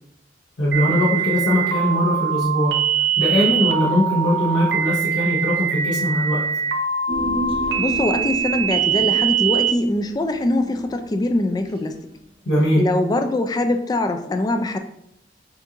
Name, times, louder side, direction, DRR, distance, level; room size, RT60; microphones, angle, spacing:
voice 1, 0.6-2.8 3.2-6.4 12.5-12.8, left 1 dB, 70° left, -7 dB, 1.0 m, -20 dB
sound 1, 0.7-9.7, right 8 dB, 75° right, 0.6 m, -22 dB
Human voice, 7.1-11.7 12.0-12.1, right 2 dB, 30° right, 0.7 m, -32 dB
voice 2, 7.8-12.0 12.8-14.8, left 2 dB, 20° left, 6 dB, 0.3 m, -22 dB
6.9 x 2.5 x 2.8 m, 0.75 s
head